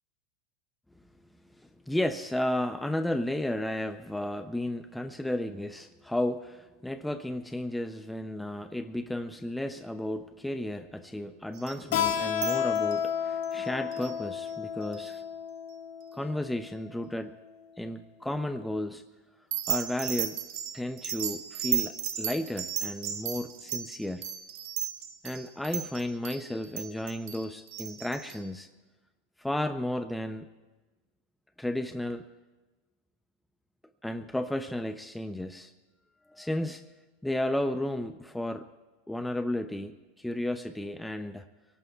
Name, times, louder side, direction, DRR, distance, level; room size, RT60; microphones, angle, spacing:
voice 1, 1.6-15.2 16.1-17.4 17.8-19.0 19.7-20.4 20.7-24.3 25.2-28.7 29.4-30.5 31.6-32.2 34.0-35.7 36.3-36.9 37.2-38.7 39.1-41.5, left 1 dB, 5° left, 9 dB, 0.5 m, -33 dB
sound 1, 11.5-13.1 13.4-13.5 13.9-14.2 14.9-15.1 19.5-28.4, right 10 dB, 60° right, 1.6 m, -35 dB
Keyboard (musical), 11.9-17.2, left 9 dB, 75° left, 2.2 m, -32 dB
25.0 x 18.0 x 2.4 m, 1.2 s
supercardioid pair, 125°, 0 cm